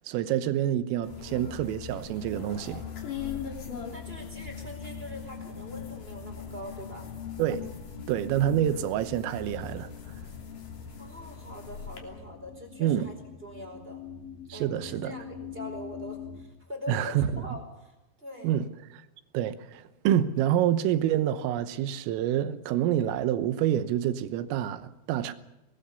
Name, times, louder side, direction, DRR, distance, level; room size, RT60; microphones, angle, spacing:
voice 1, 0.1-2.9 7.4-7.7 8.1-9.9 12.8-13.1 14.5-15.1 16.9-17.6 18.4-18.7 18.9-19.0 19.3-25.3, right 11 dB, 80° right, 3.6 m, -27 dB
sound 1, 1.0-12.0, left 6 dB, 45° left, 4.2 m, -43 dB
sound 2, 1.1-16.4, left 7 dB, 65° left, 6.8 m, -43 dB
voice 2, 1.1-1.6 3.9-7.1 11.0-13.1 13.4-14.0 14.5-18.6, left 1 dB, 10° right, 3.9 m, -43 dB
24.5 x 19.5 x 7.0 m
omnidirectional pair, 5.9 m